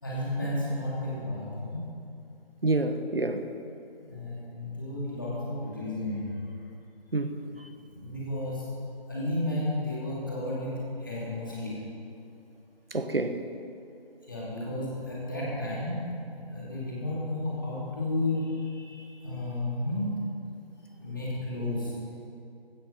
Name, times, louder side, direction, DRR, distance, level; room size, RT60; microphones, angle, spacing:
voice 1, 0.0-2.0 4.1-6.4 7.9-8.7 9.1-11.8 14.3-20.2 21.0-22.0, left 1 dB, 20° left, -6 dB, 2.7 m, -32 dB
voice 2, 2.6-3.5 7.1-7.7 12.9-13.4, right 2 dB, 65° right, 8 dB, 1.4 m, -28 dB
16.0 x 13.0 x 5.5 m, 2.7 s
figure-of-eight pair, 170°, 31 cm